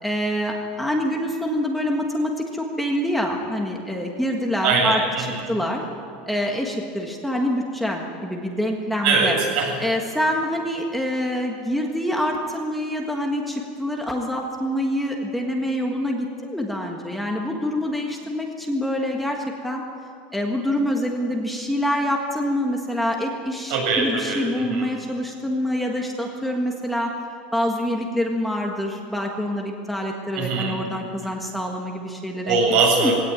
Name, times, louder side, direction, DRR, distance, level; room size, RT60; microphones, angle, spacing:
voice 1, 0.0-5.0 5.5-5.8 6.3-9.4 9.8-19.8 20.3-27.1 27.5-32.6 32.9-33.1, equal, ahead, 0 dB, 1.6 m, -26 dB
voice 2, 4.6-5.5 9.0-9.7 23.7-24.9 30.3-30.8 32.4-33.1, right 4 dB, 60° right, 0 dB, 7.9 m, -22 dB
21.0 x 17.5 x 9.0 m, 2.4 s
supercardioid pair, 160°, 5 cm